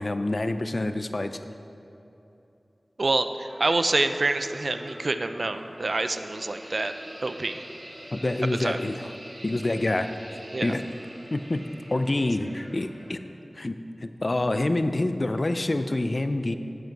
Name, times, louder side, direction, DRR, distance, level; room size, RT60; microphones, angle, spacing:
voice 1, 0.0-1.4 8.1-9.1 9.4-10.1 10.6-10.8 11.3-11.6 11.9-13.2 13.6-13.8 14.0-16.6, left 2 dB, 45° left, 9 dB, 0.4 m, -26 dB
voice 2, 3.0-6.9 7.2-7.6 8.6-8.8 10.5-10.7, right 2 dB, 60° right, 9 dB, 0.4 m, -27 dB
sound 1, 3.5-13.1, right 1 dB, 45° right, 1.3 m, -45 dB
7.8 x 7.7 x 4.6 m, 2.9 s
wide cardioid pair, 60°, 0 cm